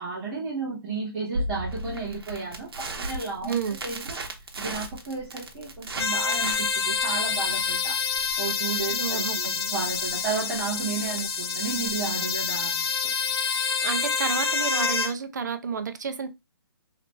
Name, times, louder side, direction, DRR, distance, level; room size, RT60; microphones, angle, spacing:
voice 1, 0.0-4.2 4.6-8.0 8.4-12.9, right 4 dB, 10° right, 1.0 m, -33 dB
Crackle, 1.3-13.3, right 1 dB, 75° right, 0.9 m, -37 dB
sound 1, 6.0-15.1, left 6 dB, 90° left, 0.6 m, -27 dB
voice 2, 9.0-9.5 13.8-16.3, right 6 dB, 45° right, 0.5 m, -30 dB
3.2 x 2.9 x 2.9 m
hypercardioid pair, 175°, 13 cm